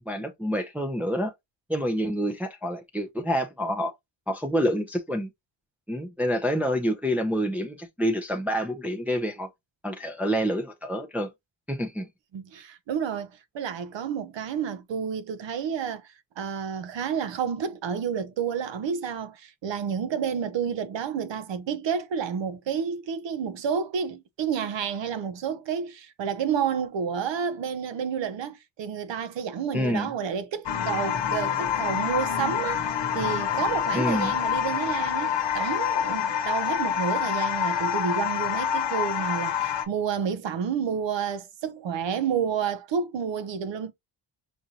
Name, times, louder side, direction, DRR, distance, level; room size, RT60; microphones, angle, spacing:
voice 1, 0.0-1.3 1.7-3.9 4.3-5.3 5.9-9.5 9.8-11.3 11.7-12.1 29.7-30.1 33.9-34.3, equal, 5° right, 0.5 m, -27 dB
voice 2, 12.3-13.3 13.5-43.9, right 7 dB, 70° right, 0.7 m, -30 dB
sound 1, 30.6-39.8, left 8 dB, 65° left, 0.9 m, -27 dB
5.1 x 2.6 x 2.8 m
wide cardioid pair, 125°, 47 cm